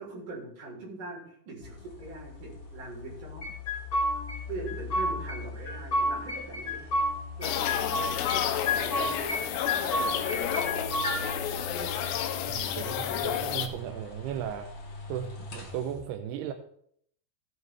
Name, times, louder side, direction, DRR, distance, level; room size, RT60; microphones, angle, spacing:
voice 1, 0.0-3.5 4.5-6.9 7.4-8.0 8.7-9.3 9.9-10.8, right 2 dB, 45° right, -4 dB, 5.2 m, -42 dB
sound 1, 1.6-16.0, left 2 dB, 45° left, 3.3 m, -42 dB
sound 2, 3.4-4.4 4.7-5.4 5.6-7.1 7.4-8.4 8.7-9.4 9.7-11.2, left 1 dB, 20° left, 3.4 m, -29 dB
sound 3, 7.4-13.7, left 9 dB, 80° left, 2.9 m, -31 dB
voice 2, 12.5-14.7 15.1-16.5, right 9 dB, 80° right, 7 dB, 2.4 m, -36 dB
16.0 x 9.3 x 3.4 m, 0.65 s
omnidirectional pair, 5.1 m